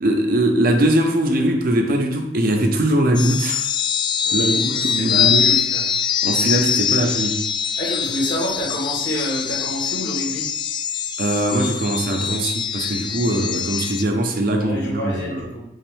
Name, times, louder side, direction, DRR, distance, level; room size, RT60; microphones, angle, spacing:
voice 1, 0.0-3.6 4.3-5.5 6.2-7.5 11.2-15.5, right 1 dB, 55° right, 0.6 m, -21 dB
sound 1, 3.1-14.0, left 8 dB, 25° left, 0.3 m, -23 dB
voice 2, 4.2-5.8 7.8-10.4 14.6-15.6, left 1 dB, 90° left, 1.7 m, -28 dB
5.6 x 2.6 x 3.4 m
head